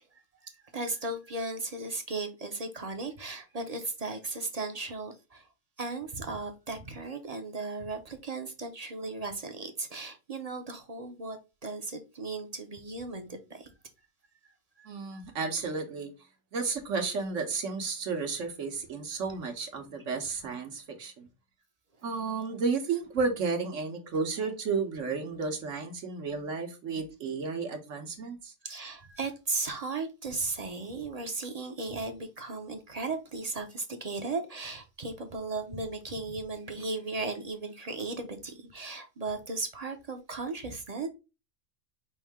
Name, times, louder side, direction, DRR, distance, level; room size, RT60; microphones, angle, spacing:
voice 1, 0.1-5.5 5.8-13.7 14.8-15.2 28.6-41.1, right 3 dB, 35° right, 0.7 m, -36 dB
voice 2, 14.8-16.1 16.5-21.3 22.0-28.5, right 4 dB, 70° right, 1.4 m, -32 dB
5.6 x 2.7 x 3.4 m
omnidirectional pair, 1.3 m